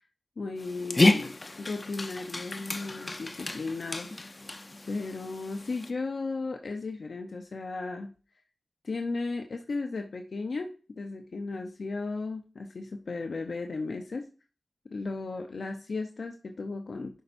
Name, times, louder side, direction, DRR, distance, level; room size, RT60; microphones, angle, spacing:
voice 1, 0.4-4.4 4.9-8.1 8.8-14.3 14.9-17.2, left 3 dB, 70° left, 3 dB, 0.7 m, -35 dB
Dog, 0.6-5.9, left 2 dB, 35° left, 0.7 m, -30 dB
11.5 x 5.5 x 2.6 m, 0.36 s
wide cardioid pair, 70°, 0 cm